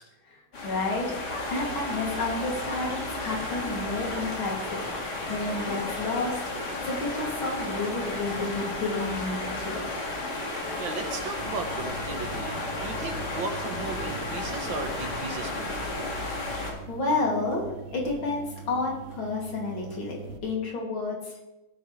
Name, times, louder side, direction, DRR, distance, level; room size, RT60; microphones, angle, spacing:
voice 1, 0.3-1.2 1.5-4.8 5.2-6.4 6.8-9.8 16.7-20.2 20.4-21.3, left 3 dB, 85° left, -2 dB, 3.4 m, -30 dB
sound 1, 0.5-16.7, left 2 dB, 55° left, 2.7 m, -33 dB
voice 2, 10.8-16.2, right 4 dB, 75° right, 5 dB, 2.1 m, -36 dB
sound 2, 11.4-20.4, right 4 dB, 45° right, 0.9 m, -43 dB
16.5 x 9.1 x 3.2 m, 0.97 s
omnidirectional pair, 2.2 m